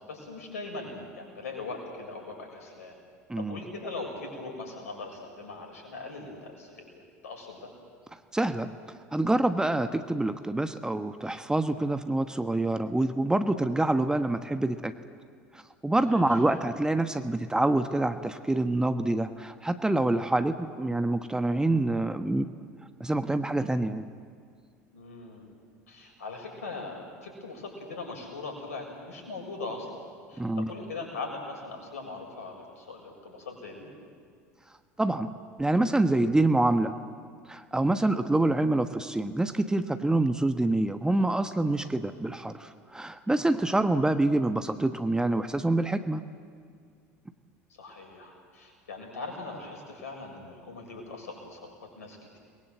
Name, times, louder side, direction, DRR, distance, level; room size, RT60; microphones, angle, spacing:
voice 1, 0.0-2.9 3.3-7.7 16.0-16.4 24.9-25.5 25.9-33.9 43.6-43.9 47.7-52.4, left 3 dB, 75° left, 2 dB, 6.8 m, -40 dB
voice 2, 8.3-8.7 9.1-14.9 15.5-22.5 23.0-24.1 30.4-30.7 35.0-35.3 35.6-36.9 37.5-46.2, right 2 dB, 10° right, 9 dB, 1.2 m, -26 dB
30.0 x 21.5 x 7.9 m, 2.1 s
figure-of-eight pair, 70°, 8 cm